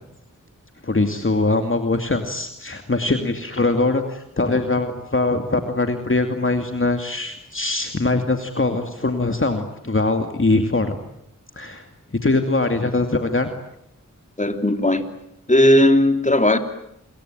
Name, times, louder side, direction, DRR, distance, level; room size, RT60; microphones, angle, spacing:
voice 1, 0.8-11.0 11.5-11.8 12.2-13.5, left 2 dB, 40° left, 2.5 m, -22 dB
voice 2, 14.4-15.0 15.5-16.6, left 1 dB, 25° left, 3.3 m, -16 dB
28.0 x 23.0 x 9.1 m
cardioid pair, 45°, 32 cm